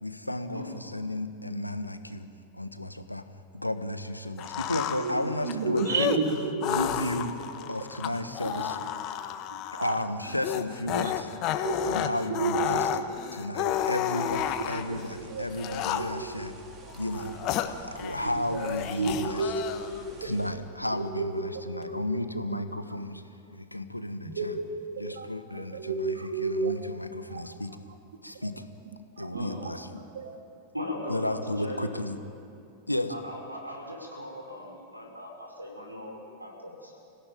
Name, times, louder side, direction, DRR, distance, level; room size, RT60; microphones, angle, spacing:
voice 1, 0.0-2.2 2.5-3.2 3.5-6.1 6.6-7.4 7.7-8.8 9.8-11.3 11.9-12.8 13.3-16.5 16.9-17.3 17.8-19.4 20.2-23.2 23.5-24.5 25.0-26.1 26.4-27.8 28.2-28.6 29.2-30.0 31.1-32.2 32.9-33.1, left 1 dB, 85° left, 9 dB, 1.3 m, -33 dB
sound 1, 4.4-15.0 15.5-16.3 16.9-18.3 18.5-20.0, left 11 dB, 40° left, 1.3 m, -32 dB
voice 2, 5.0-7.0 7.6-7.7 8.4-8.9 9.5-10.0 11.0-11.1 11.6-12.9 13.6-13.8 14.2-16.3 17.1-17.3 18.1-19.6 19.9-20.4 20.9-22.0 22.5-22.6 24.2-25.3 25.5-26.8 27.3-27.5 28.3-28.5 29.2-29.7 30.1-30.4, right 4 dB, 65° right, 5 dB, 2.8 m, -33 dB
sound 2, 14.3-20.5, right 4 dB, 30° right, 3.8 m, -49 dB
voice 3, 30.7-31.9 33.1-36.9, left 1 dB, 85° right, 1 dB, 5.0 m, -38 dB
27.5 x 17.0 x 9.3 m, 2.6 s
figure-of-eight pair, 90°, 0 cm